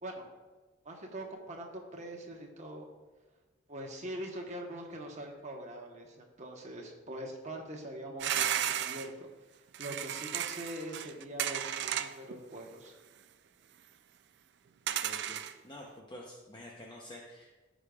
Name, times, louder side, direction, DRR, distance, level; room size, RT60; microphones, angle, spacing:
voice 1, 0.8-2.9 3.7-9.3 9.8-12.9, right 1 dB, 40° right, 1 dB, 1.0 m, -43 dB
sound 1, 8.2-9.1 9.7-12.3 12.7-12.8 14.9-15.5, right 11 dB, 60° right, 0.3 m, -34 dB
voice 2, 15.0-15.4 15.6-17.6, left 1 dB, 25° left, -2 dB, 0.7 m, -48 dB
15.0 x 5.1 x 2.3 m, 1.3 s
head